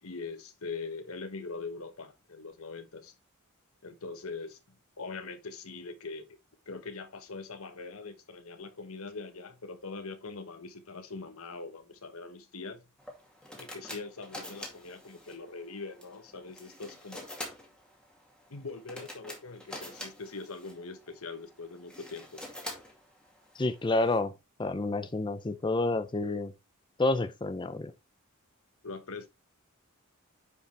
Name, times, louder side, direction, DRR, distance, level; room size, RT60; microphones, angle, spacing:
voice 1, 0.0-3.1 3.8-4.6 5.0-6.3 6.7-12.9 13.5-17.3 18.5-22.4 28.8-29.3, left 4 dB, 80° left, 1.3 m, -42 dB
sound 1, 13.0-24.2, left 1 dB, 5° left, 2.2 m, -46 dB
voice 2, 23.6-24.3 24.6-26.5 27.0-27.9, left 2 dB, 20° left, 0.5 m, -29 dB
9.8 x 5.3 x 3.3 m
head